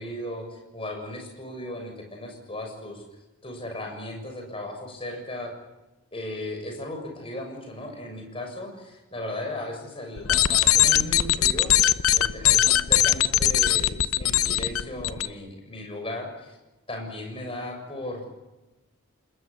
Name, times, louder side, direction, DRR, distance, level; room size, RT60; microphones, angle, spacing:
voice 1, 0.0-3.0 3.4-5.5 6.1-11.7 12.1-16.6 16.9-18.2, left 1 dB, 25° left, 3 dB, 7.0 m, -36 dB
sound 1, 10.2-15.3, left 12 dB, 75° left, 0.8 m, -21 dB
29.0 x 20.0 x 8.5 m, 1.0 s
head